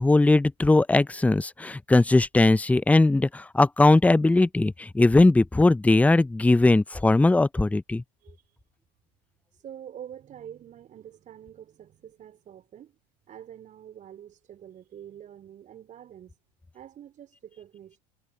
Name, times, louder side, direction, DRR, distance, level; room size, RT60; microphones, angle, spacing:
voice 1, 0.0-8.0, left 2 dB, 5° left, 0.9 m, -20 dB
voice 2, 9.6-13.0 13.3-16.3 16.7-18.0, right 10 dB, 35° right, 5.0 m, -46 dB
figure-of-eight pair, 75°, 21 cm